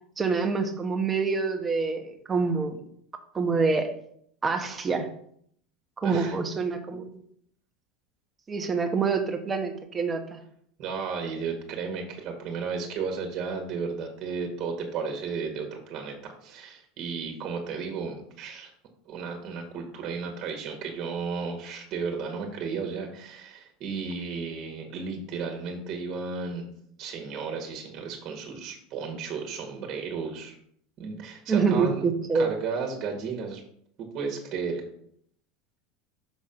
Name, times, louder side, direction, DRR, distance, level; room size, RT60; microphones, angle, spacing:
voice 1, 0.2-2.8 3.3-3.9 4.4-5.1 6.0-7.2 8.5-10.4 31.5-32.5, right 4 dB, 25° right, 5 dB, 1.2 m, -26 dB
voice 2, 6.0-6.4 10.8-18.7 19.1-26.7 27.0-30.6 31.0-32.0 32.3-33.6 34.0-34.8, right 5 dB, 50° right, 2 dB, 1.7 m, -34 dB
6.4 x 4.1 x 5.2 m, 0.66 s
supercardioid pair, 105°, 0 cm